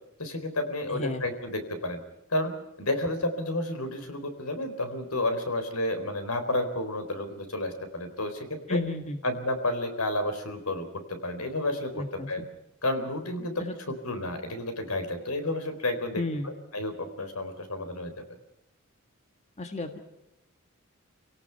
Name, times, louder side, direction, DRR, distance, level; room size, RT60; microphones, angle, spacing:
voice 1, 0.2-2.0 2.3-2.5 2.8-8.8 9.2-11.9 12.3-12.4 12.8-13.5 14.0-18.1, left 1 dB, 85° left, 8 dB, 4.0 m, -31 dB
voice 2, 0.9-1.2 8.7-9.2 11.9-12.3 13.6-13.7 16.2-16.5 19.6-20.0, left 2 dB, 30° left, 6 dB, 1.6 m, -32 dB
28.0 x 18.0 x 5.8 m, 0.88 s
head